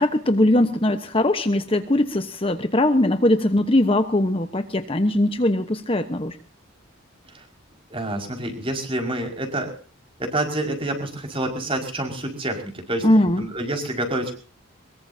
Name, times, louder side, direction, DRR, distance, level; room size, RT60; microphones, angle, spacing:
voice 1, 0.0-6.4 13.0-13.4, left 1 dB, 25° left, 8 dB, 1.1 m, -20 dB
voice 2, 7.9-9.7 10.2-13.1 13.4-14.3, right 1 dB, 25° right, 4 dB, 5.3 m, -27 dB
23.5 x 22.0 x 2.8 m, 0.38 s
head